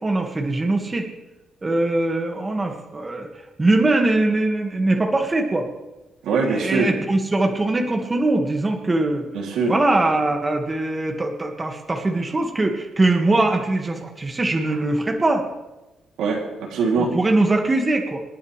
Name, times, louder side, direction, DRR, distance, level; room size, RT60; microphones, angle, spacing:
voice 1, 0.0-1.1 1.6-3.3 3.6-5.7 6.4-9.3 9.7-15.4 17.0-18.2, right 2 dB, 25° right, 2 dB, 1.9 m, -21 dB
voice 2, 6.2-7.0 9.3-9.7 16.2-17.1, right 4 dB, 85° right, -1 dB, 3.0 m, -22 dB
27.0 x 9.5 x 3.4 m, 1.1 s
cardioid pair, 90°, 0 cm